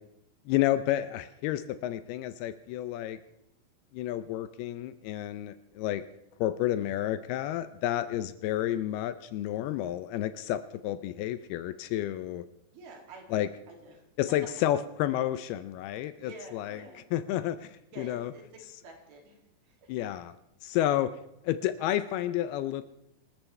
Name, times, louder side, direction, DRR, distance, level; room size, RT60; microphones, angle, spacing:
voice 1, 0.5-3.2 3.9-6.0 6.4-12.5 13.3-13.5 14.2-16.8 17.1-18.3 19.9-20.3 20.6-21.2 21.4-22.8, left 13 dB, 80° left, 12 dB, 2.5 m, -30 dB
voice 2, 12.7-14.1 16.2-17.0 17.9-19.9, right 2 dB, 65° right, 0 dB, 4.4 m, -49 dB
25.5 x 13.5 x 3.3 m, 0.84 s
omnidirectional pair, 4.7 m